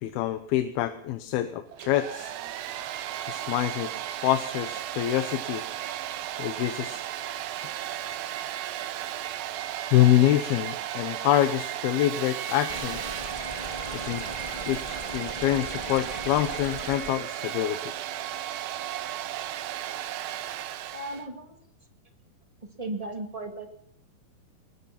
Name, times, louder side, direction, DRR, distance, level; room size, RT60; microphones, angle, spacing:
voice 1, 0.0-2.3 3.3-3.9 4.2-5.6 6.4-7.0 9.9-13.0 13.9-14.2 14.7-17.9, left 13 dB, 80° left, 10 dB, 2.8 m, -26 dB
Domestic sounds home sounds, 1.7-21.3, right 12 dB, 75° right, 2.7 m, -35 dB
sound 1, 12.7-17.1, left 1 dB, 25° left, 0.8 m, -39 dB
voice 2, 20.9-21.5 22.8-23.7, right 2 dB, 20° right, 5 dB, 0.9 m, -35 dB
22.5 x 20.5 x 5.9 m, 0.67 s
omnidirectional pair, 4.5 m